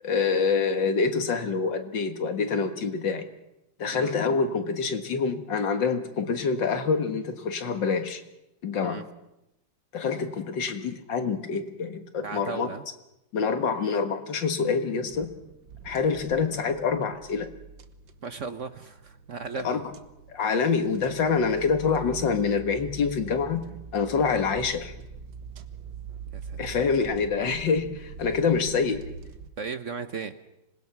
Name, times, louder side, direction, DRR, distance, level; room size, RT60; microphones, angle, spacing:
voice 1, 0.0-3.3 3.8-8.2 8.6-9.1 9.9-12.7 13.3-15.3 15.8-17.5 19.6-19.9 20.3-24.9 26.6-29.0, left 5 dB, 75° left, 7 dB, 2.4 m, -26 dB
voice 2, 12.2-12.8 18.2-19.8 26.3-27.0 29.6-30.3, right 5 dB, 50° right, 10 dB, 1.1 m, -36 dB
sound 1, 15.0-29.5, right 6 dB, 70° right, 1.7 m, -44 dB
26.0 x 20.0 x 6.0 m, 0.89 s
omnidirectional pair, 2.0 m